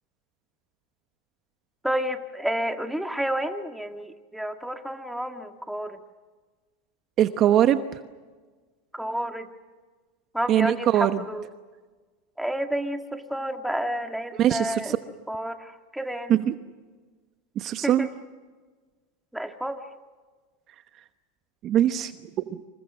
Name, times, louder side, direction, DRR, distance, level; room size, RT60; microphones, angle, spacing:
voice 1, 1.8-6.0 8.9-9.5 10.3-11.5 12.4-16.4 17.8-18.1 19.3-19.8, equal, ahead, 5 dB, 2.0 m, -30 dB
voice 2, 7.2-8.0 10.5-11.1 14.4-15.0 16.3-16.5 17.6-18.1 21.6-22.1, right 11 dB, 40° right, 10 dB, 1.1 m, -21 dB
28.0 x 27.5 x 6.3 m, 1.4 s
supercardioid pair, 125°, 0 cm